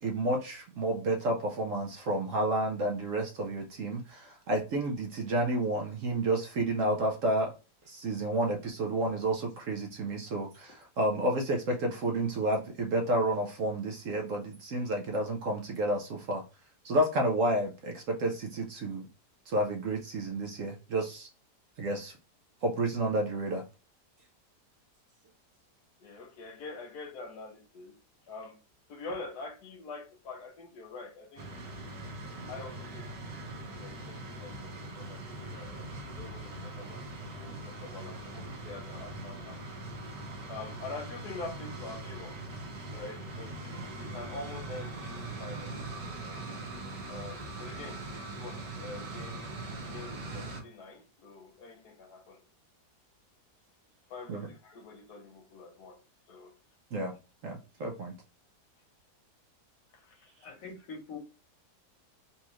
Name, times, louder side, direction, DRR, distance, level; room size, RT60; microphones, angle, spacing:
voice 1, 0.0-7.5 7.9-16.4 16.8-19.1 19.5-21.3 21.8-22.2 22.6-23.6 54.3-54.4 56.9-57.1 57.4-58.1, right 1 dB, 65° right, 0.8 m, -30 dB
voice 2, 26.0-28.0 28.3-28.6 28.9-31.5 32.5-39.7 40.5-45.9 46.2-46.5 47.1-49.6 49.9-52.4 54.1-56.0 56.3-56.5 59.9-60.6, left 3 dB, 70° left, 1.3 m, -45 dB
sound 1, 31.4-50.6, right 2 dB, 85° right, 1.6 m, -41 dB
voice 3, 60.4-61.2, left 4 dB, 55° left, 1.4 m, -43 dB
4.1 x 2.4 x 3.0 m
omnidirectional pair, 1.8 m